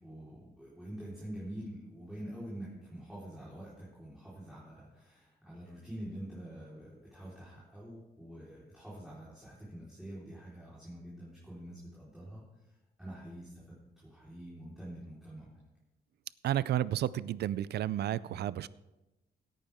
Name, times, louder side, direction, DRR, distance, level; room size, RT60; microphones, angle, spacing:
voice 1, 0.0-15.6, right 1 dB, 5° right, -8 dB, 4.1 m, -46 dB
voice 2, 16.4-18.7, right 12 dB, 80° right, 18 dB, 0.4 m, -31 dB
17.0 x 9.5 x 3.6 m, 1.0 s
cardioid pair, 120°, 17 cm